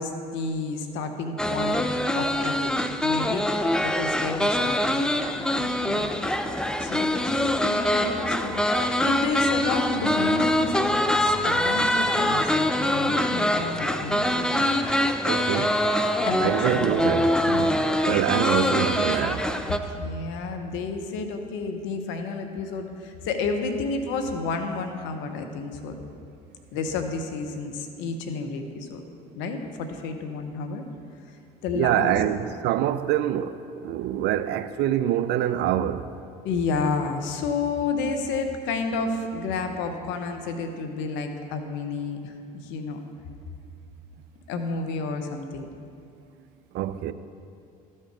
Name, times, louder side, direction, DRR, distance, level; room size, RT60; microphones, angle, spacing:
voice 1, 0.0-1.9 2.1-6.3 6.8-14.8 16.2-16.9 19.6-25.9 26.7-29.0 29.3-30.8 31.6-32.2 36.4-43.0 44.5-45.7, left 4 dB, 70° left, 0.9 m, -31 dB
sound 1, 1.4-19.8, left 1 dB, 5° left, 0.4 m, -24 dB
voice 2, 15.2-15.8 16.4-19.5 31.7-36.1 46.7-47.1, right 11 dB, 60° right, 0.4 m, -25 dB
12.5 x 4.4 x 4.7 m
hypercardioid pair, 70°, 20 cm